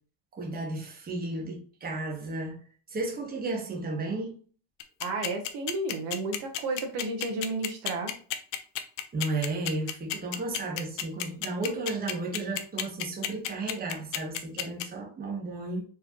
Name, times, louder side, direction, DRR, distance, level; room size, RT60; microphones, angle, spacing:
voice 1, 0.4-2.6 2.9-4.3 9.1-15.8, right 2 dB, 20° right, 1.2 m, -33 dB
sound 1, 4.8-14.8, left 13 dB, 65° left, 0.8 m, -31 dB
voice 2, 5.0-8.1, right 2 dB, 55° right, 1.1 m, -32 dB
4.7 x 3.2 x 2.9 m
cardioid pair, 150°, 48 cm